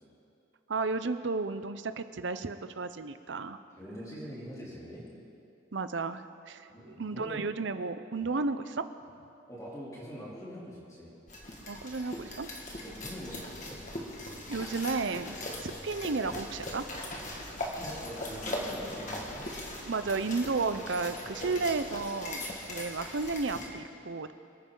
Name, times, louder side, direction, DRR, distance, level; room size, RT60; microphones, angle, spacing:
voice 1, 0.7-3.6 5.7-8.9 11.7-12.5 14.5-16.9 19.8-24.3, right 3 dB, 60° right, 11 dB, 0.6 m, -33 dB
voice 2, 3.8-5.1 6.7-7.4 8.2-8.3 9.5-11.1 12.8-13.8 17.5-19.5 22.4-22.5, equal, 15° left, -7 dB, 3.3 m, -44 dB
sound 1, 11.3-23.7, left 1 dB, 40° left, 1.9 m, -40 dB
26.5 x 9.7 x 3.9 m, 2.7 s
head